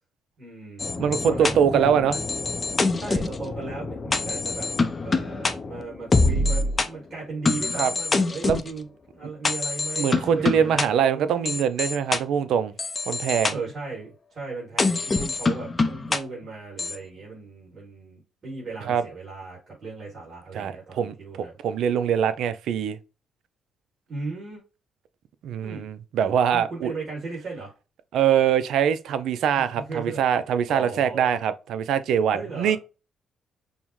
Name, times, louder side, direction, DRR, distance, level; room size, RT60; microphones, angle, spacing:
voice 1, 0.4-0.9 1.3-2.0 3.0-4.7 5.0-8.9 9.1-11.7 13.5-21.6 24.1-24.6 25.6-25.9 26.5-27.7 29.7-30.2 30.7-31.3 32.3-32.8, right 3 dB, 45° right, 2.3 m, -36 dB
sound 1, 0.8-6.9 7.5-8.7 9.4-10.9 11.5-12.2 12.8-13.5 14.8-16.2 16.8-17.0, left 3 dB, 30° left, 0.5 m, -25 dB
voice 2, 1.0-2.2 7.7-7.9 8.4-8.6 10.0-12.7 13.1-13.6 18.9-19.0 20.5-21.1 21.6-23.0 25.4-26.9 28.1-32.8, right 8 dB, 75° right, 0.4 m, -23 dB
5.3 x 2.1 x 3.0 m
cardioid pair, 90°, 0 cm